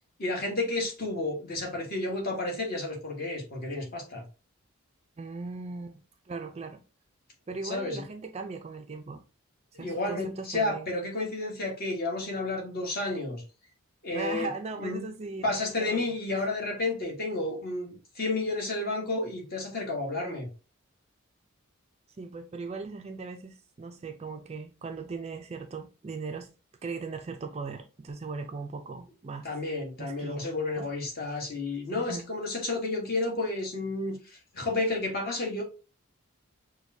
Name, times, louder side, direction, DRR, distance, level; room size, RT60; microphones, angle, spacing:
voice 1, 0.2-4.2 7.6-8.0 9.7-13.4 14.0-14.5 14.8-15.1 15.4-20.5 29.4-35.6, left 2 dB, 45° left, 1.4 m, -31 dB
voice 2, 5.2-6.8 7.5-9.2 9.8-10.9 14.1-16.5 22.2-26.5 26.8-29.5 30.0-30.9 31.9-32.3, right 4 dB, 30° right, 0.3 m, -39 dB
6.1 x 2.2 x 2.7 m
head